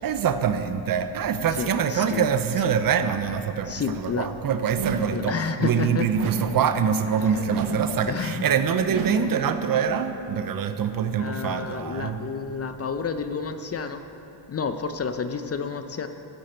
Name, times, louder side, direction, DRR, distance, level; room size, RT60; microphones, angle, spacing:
voice 1, 0.0-12.2, right 7 dB, 45° right, 10 dB, 0.7 m, -25 dB
voice 2, 1.6-2.3 2.6-2.7 3.7-4.3 5.1-6.3 7.3-7.6 8.1-8.4 11.2-14.0 14.5-16.1, left 5 dB, 30° left, 9 dB, 0.6 m, -30 dB
sound 1, 4.8-5.3 6.2-6.7 7.5-8.0 8.9-9.4, right 4 dB, 75° right, 1.4 m, -30 dB
15.0 x 10.0 x 4.4 m, 3.0 s
cardioid pair, 90°, 50 cm